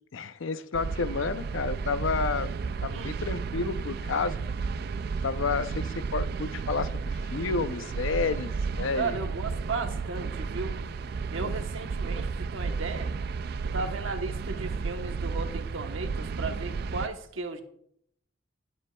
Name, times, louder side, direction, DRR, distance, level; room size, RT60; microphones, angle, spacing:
voice 1, 0.1-2.5 2.8-4.4 5.2-9.2, left 4 dB, 80° left, 0.6 m, -30 dB
sound 1, 0.7-17.1, right 5 dB, 50° right, 0.3 m, -33 dB
voice 2, 8.9-10.9 11.3-13.1 13.6-17.6, right 3 dB, 80° right, 1.1 m, -35 dB
17.0 x 7.2 x 2.3 m
head